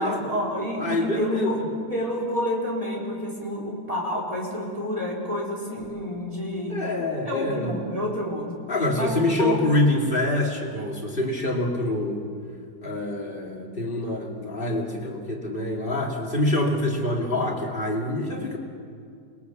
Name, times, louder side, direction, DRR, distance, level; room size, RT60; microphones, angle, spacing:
voice 1, 0.0-1.6 1.9-6.8 7.3-8.5 8.9-9.6, left 1 dB, 20° right, -2 dB, 4.3 m, -29 dB
voice 2, 0.8-1.5 6.7-7.7 8.7-12.3 12.8-18.6, left 1 dB, 35° left, 0 dB, 2.8 m, -26 dB
27.5 x 21.0 x 7.2 m, 2.4 s
omnidirectional pair, 1.7 m